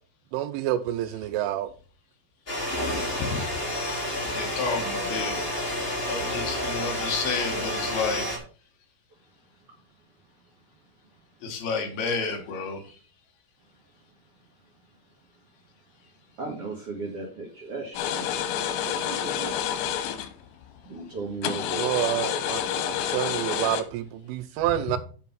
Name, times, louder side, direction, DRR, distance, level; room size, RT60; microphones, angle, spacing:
voice 1, 0.3-1.7 21.8-25.0, right 12 dB, 90° right, 3.2 m, -28 dB
sound 1, 2.5-8.4, left 1 dB, 25° left, 1.3 m, -30 dB
voice 2, 4.3-8.2 11.4-12.8, left 5 dB, 65° left, 2.8 m, -31 dB
voice 3, 16.4-18.5 18.8-19.6 20.8-22.4 24.8-24.9, right 3 dB, 55° right, 1.6 m, -36 dB
sound 2, 18.0-20.3 21.4-23.8, left 9 dB, 85° left, 3.5 m, -29 dB
8.2 x 5.6 x 5.9 m
omnidirectional pair, 5.6 m